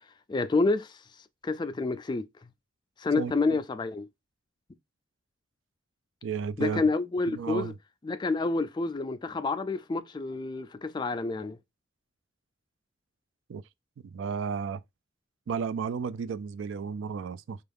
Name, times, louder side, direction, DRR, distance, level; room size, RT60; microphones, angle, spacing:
voice 1, 0.3-1.0 1.4-2.3 3.0-4.1 6.6-7.7 8.0-11.6, left 3 dB, 25° left, 0.3 m, -28 dB
voice 2, 6.2-6.8 7.3-7.7 13.5-13.6 14.1-14.8 15.5-17.6, right 6 dB, 90° right, 0.3 m, -33 dB
4.5 x 2.4 x 3.4 m
head